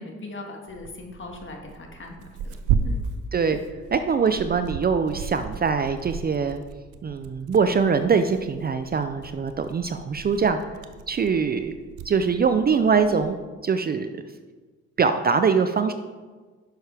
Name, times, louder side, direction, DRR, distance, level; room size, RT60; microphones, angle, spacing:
voice 1, 0.0-2.6 2.8-3.0, left 2 dB, 40° left, 2 dB, 1.7 m, -39 dB
Tearing, 0.7-13.3, right 6 dB, 85° right, 0.6 m, -34 dB
voice 2, 3.9-6.6 7.0-10.6 11.1-11.7 12.1-13.4 13.6-14.1 15.0-15.9, right 5 dB, 30° right, 9 dB, 0.4 m, -23 dB
10.5 x 6.5 x 3.4 m, 1.4 s
cardioid pair, 90°, 30 cm